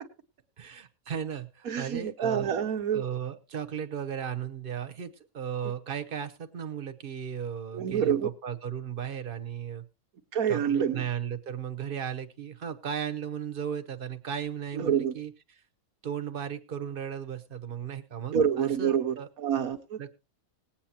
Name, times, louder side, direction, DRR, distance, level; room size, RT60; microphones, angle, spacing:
voice 1, 0.6-2.5 2.9-9.8 10.5-15.3 16.0-19.3 20.0-20.1, right 8 dB, 40° right, 1.1 m, -36 dB
voice 2, 1.7-3.0 7.7-8.3 10.3-11.0 14.7-15.1 18.3-20.1, right 8 dB, 85° right, 1.6 m, -27 dB
20.0 x 8.7 x 2.9 m
omnidirectional pair, 1.5 m